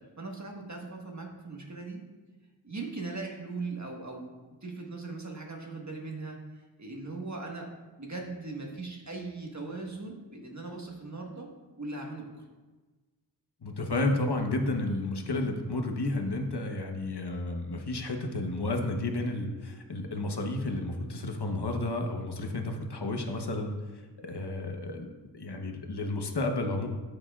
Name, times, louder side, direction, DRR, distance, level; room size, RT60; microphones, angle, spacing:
voice 1, 0.0-2.0 2.6-4.3 4.6-7.7 8.0-11.5 11.8-12.4, right 3 dB, 40° right, 0 dB, 1.5 m, -39 dB
voice 2, 13.6-23.7 24.2-25.1 25.3-26.9, left 2 dB, 65° left, 3 dB, 1.0 m, -31 dB
12.5 x 6.8 x 2.4 m, 1.2 s
wide cardioid pair, 60°, 42 cm